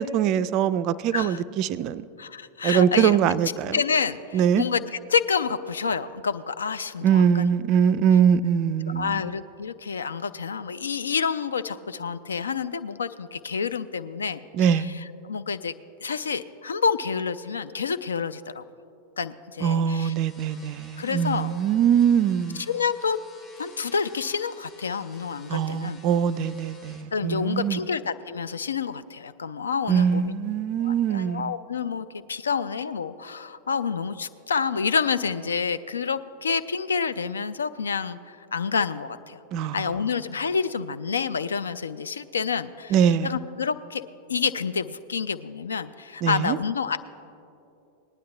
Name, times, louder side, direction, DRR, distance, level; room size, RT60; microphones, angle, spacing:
voice 1, 0.0-2.1 2.6-3.8 4.3-4.6 7.0-9.2 14.5-14.9 19.6-22.6 25.5-27.8 29.9-31.5 39.5-39.9 42.9-43.3 46.2-46.6, right 8 dB, 40° right, 16 dB, 0.3 m, -22 dB
voice 2, 2.2-3.2 3.7-7.5 8.9-15.7 16.0-18.6 19.2-20.1 21.0-21.5 22.6-23.2 23.6-26.0 27.1-30.3 30.8-39.4 39.7-43.0 43.2-44.0 44.3-47.0, left 6 dB, 70° left, 13 dB, 0.4 m, -28 dB
sound 1, 20.0-27.0, left 3 dB, 35° left, 1.6 m, -52 dB
19.0 x 10.0 x 3.2 m, 2.8 s
figure-of-eight pair, 90°, 0 cm